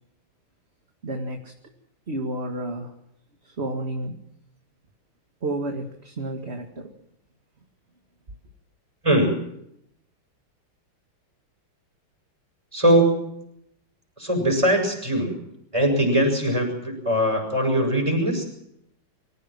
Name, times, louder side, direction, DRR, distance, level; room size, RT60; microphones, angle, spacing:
voice 1, 1.0-1.5 2.1-2.9 3.4-4.2 5.4-6.9, right 1 dB, 30° right, 2.2 m, -31 dB
voice 2, 9.0-9.4 12.7-13.4 14.2-15.4 15.7-18.4, right 1 dB, 15° right, 7.1 m, -21 dB
25.0 x 16.5 x 7.6 m
omnidirectional pair, 2.2 m